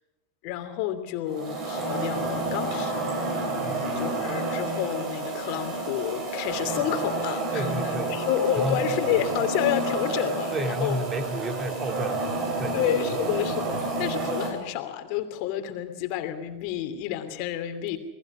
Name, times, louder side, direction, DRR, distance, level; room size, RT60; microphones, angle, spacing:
voice 1, 0.4-3.5 3.9-11.0 12.7-18.0, left 11 dB, 45° left, 9 dB, 2.9 m, -30 dB
sound 1, 1.3-14.5, right 2 dB, 40° right, 7.9 m, -30 dB
voice 2, 7.5-8.1 8.6-8.8 10.5-12.8, equal, 20° right, 6 dB, 3.3 m, -31 dB
29.0 x 20.0 x 5.0 m, 1.1 s
figure-of-eight pair, 90°, 0 cm